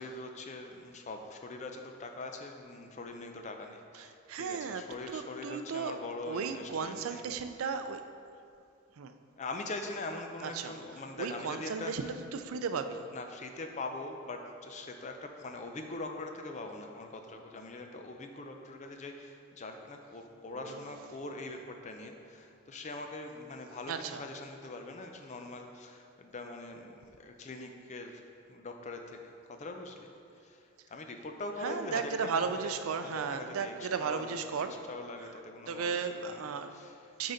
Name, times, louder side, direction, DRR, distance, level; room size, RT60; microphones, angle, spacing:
voice 1, 0.0-7.3 9.4-11.9 13.1-28.2 28.5-37.2, left 2 dB, 35° left, 4 dB, 0.5 m, -43 dB
voice 2, 4.0-6.0 6.3-8.1 9.0-9.1 10.4-10.7 11.2-13.1 20.7-20.8 23.9-24.2 31.6-34.8 35.2-35.3 35.7-36.7 37.2-37.3, right 5 dB, 80° right, 9 dB, 0.4 m, -35 dB
sound 1, 20.5-24.2, right 4 dB, 55° right, 1.5 m, -57 dB
9.2 x 3.9 x 3.9 m, 2.4 s
head